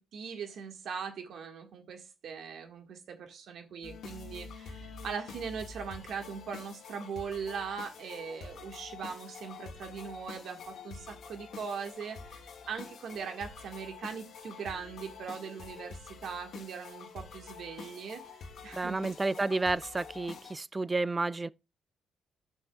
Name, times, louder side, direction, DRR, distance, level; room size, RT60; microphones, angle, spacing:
voice 1, 0.0-18.2 18.6-19.1, right 6 dB, 65° right, 1.8 m, -40 dB
sound 1, 3.8-20.6, left 5 dB, 65° left, 1.4 m, -47 dB
voice 2, 18.7-21.5, right 3 dB, 20° right, 0.4 m, -31 dB
11.0 x 6.4 x 2.4 m
cardioid pair, 90°, 0 cm